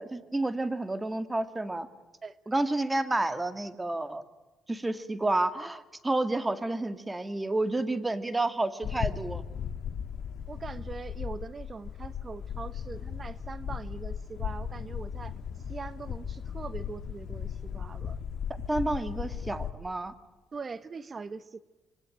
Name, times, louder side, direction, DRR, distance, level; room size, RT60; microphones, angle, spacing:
voice 1, 0.0-1.9 2.5-4.2 4.7-9.4 18.5-20.1, right 2 dB, 15° right, 12 dB, 2.1 m, -30 dB
sound 1, 8.8-19.7, left 8 dB, 70° left, 2.0 m, -37 dB
voice 2, 10.5-15.3 15.7-18.2 20.5-21.6, right 4 dB, 35° right, 16 dB, 1.1 m, -41 dB
26.5 x 24.0 x 9.0 m, 1.2 s
cardioid pair, 90°, 0 cm